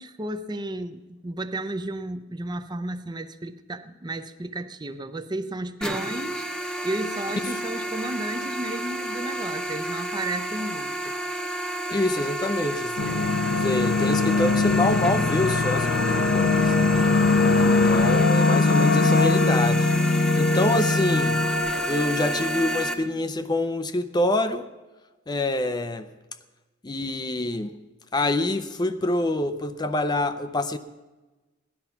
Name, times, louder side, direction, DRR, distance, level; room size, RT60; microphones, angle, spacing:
voice 1, 0.0-11.1, right 1 dB, 20° right, 11 dB, 0.6 m, -33 dB
sound 1, 5.8-22.9, right 1 dB, 5° left, 0.9 m, -30 dB
voice 2, 11.9-13.3 13.6-16.8 17.6-21.4 21.8-24.7 25.3-26.1 26.8-27.8 28.1-30.8, left 2 dB, 20° left, 10 dB, 0.5 m, -26 dB
sound 2, 13.0-22.7, left 3 dB, 70° left, 0.8 m, -22 dB
17.0 x 11.0 x 5.8 m, 1.2 s
head